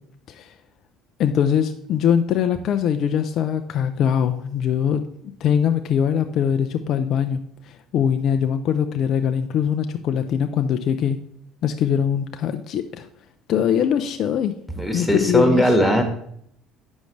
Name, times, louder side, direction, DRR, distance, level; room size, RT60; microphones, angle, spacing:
voice 1, 1.2-11.2 11.6-13.1 13.5-14.5 14.9-15.7, left 8 dB, 55° left, 8 dB, 0.4 m, -22 dB
voice 2, 14.7-16.0, equal, 10° left, 5 dB, 1.5 m, -18 dB
8.1 x 6.3 x 3.2 m, 0.68 s
hypercardioid pair, 65°, 0 cm